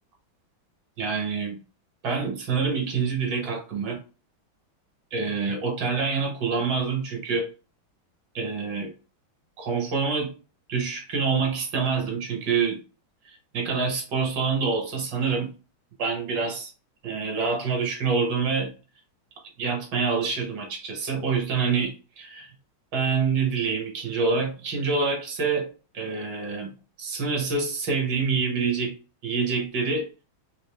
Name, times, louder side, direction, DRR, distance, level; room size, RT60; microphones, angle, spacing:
voice 1, 1.0-1.6 2.0-4.0 5.1-7.5 8.3-8.9 9.6-10.3 10.7-12.8 13.3-15.5 16.0-16.7 17.0-18.7 19.6-22.5 22.9-25.7 25.9-26.7 27.0-28.9 29.2-30.1, right 5 dB, 65° right, 2 dB, 1.5 m, -26 dB
3.7 x 2.4 x 3.2 m, 0.34 s
omnidirectional pair, 2.2 m